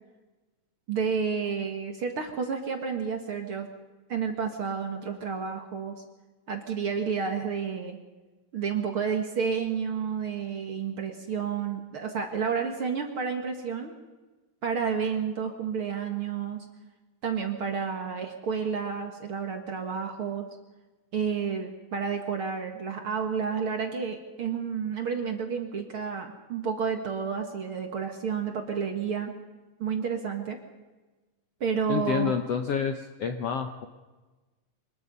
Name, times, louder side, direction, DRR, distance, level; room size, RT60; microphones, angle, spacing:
voice 1, 0.9-3.7 4.1-6.0 6.5-8.0 8.5-13.9 14.6-16.7 17.2-20.5 21.1-29.3 29.8-30.6 31.6-32.3, right 6 dB, 50° right, 4 dB, 2.0 m, -30 dB
voice 2, 31.9-33.9, left 7 dB, 65° left, 6 dB, 1.6 m, -28 dB
24.5 x 21.0 x 5.5 m, 1.2 s
omnidirectional pair, 4.0 m